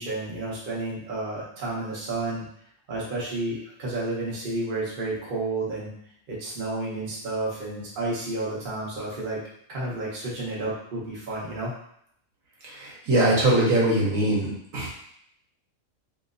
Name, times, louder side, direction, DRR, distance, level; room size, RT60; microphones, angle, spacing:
voice 1, 0.0-2.5 2.9-5.9 6.3-9.4 9.7-11.7, right 2 dB, 45° right, -6 dB, 0.9 m, -31 dB
voice 2, 12.6-14.9, right 1 dB, 70° right, -5 dB, 1.3 m, -22 dB
3.0 x 2.9 x 2.5 m, 0.69 s
omnidirectional pair, 1.5 m